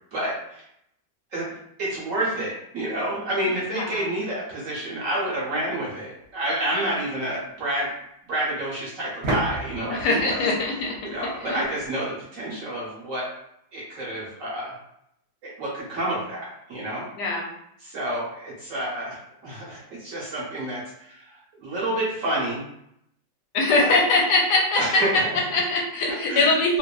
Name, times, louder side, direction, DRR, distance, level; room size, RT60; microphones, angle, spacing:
voice 1, 0.1-0.6 1.3-1.5 1.8-7.9 8.3-10.4 11.1-13.3 13.7-14.8 15.4-17.1 17.8-22.6 23.8-24.0 24.8-25.3 26.3-26.5, right 1 dB, 60° right, -6 dB, 0.9 m, -29 dB
voice 2, 3.7-4.1 9.9-11.0 11.4-11.6 17.2-17.5 23.5-26.8, left 2 dB, 75° left, -1 dB, 1.1 m, -22 dB
sound 1, 6.2-6.3 9.2-11.9, right 1 dB, 75° right, 1.3 m, -32 dB
2.9 x 2.2 x 2.3 m, 0.76 s
omnidirectional pair, 1.9 m